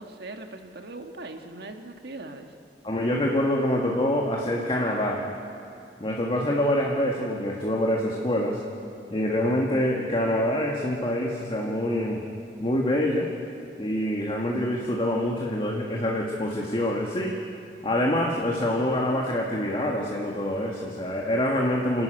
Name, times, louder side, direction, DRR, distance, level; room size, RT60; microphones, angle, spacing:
voice 1, 0.0-2.5, right 2 dB, 60° right, 5 dB, 1.6 m, -40 dB
voice 2, 2.8-5.3 6.0-8.6 9.1-12.2 12.6-13.3 13.8-17.4 17.8-22.0, left 1 dB, 30° left, -1 dB, 1.7 m, -25 dB
28.0 x 11.5 x 9.0 m, 2.8 s
head